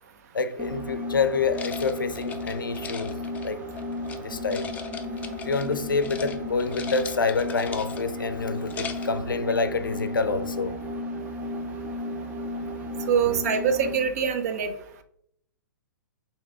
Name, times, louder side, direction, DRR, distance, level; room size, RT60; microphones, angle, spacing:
voice 1, 0.3-3.6 4.2-4.7 5.4-10.8 13.2-13.4, left 4 dB, 85° left, 0.4 m, -27 dB
sound 1, 0.6-14.1, left 1 dB, 15° right, 0.7 m, -34 dB
sound 2, 1.5-4.2 4.5-5.7 6.0-6.3 6.6-8.2 8.5-9.2, left 6 dB, 15° left, 0.4 m, -39 dB
voice 2, 13.1-14.7, right 7 dB, 50° right, 0.6 m, -24 dB
6.5 x 2.7 x 2.3 m
figure-of-eight pair, 115°, 11 cm